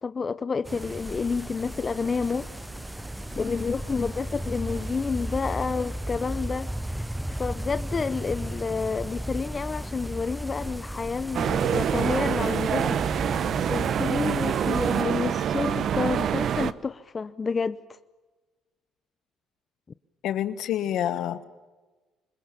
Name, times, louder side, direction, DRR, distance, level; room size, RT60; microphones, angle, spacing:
voice 1, 0.0-2.5 3.3-13.0 13.7-17.8, left 5 dB, 35° left, 0.7 m, -29 dB
sound 1, 0.6-15.0, right 1 dB, 5° right, 0.8 m, -35 dB
sound 2, 0.7-6.0, right 5 dB, 75° right, 2.0 m, -49 dB
sound 3, 11.3-16.7, right 9 dB, 60° right, 0.8 m, -26 dB
voice 2, 20.2-21.4, left 11 dB, 70° left, 1.4 m, -27 dB
26.0 x 21.5 x 7.1 m
supercardioid pair, 65°, 0 cm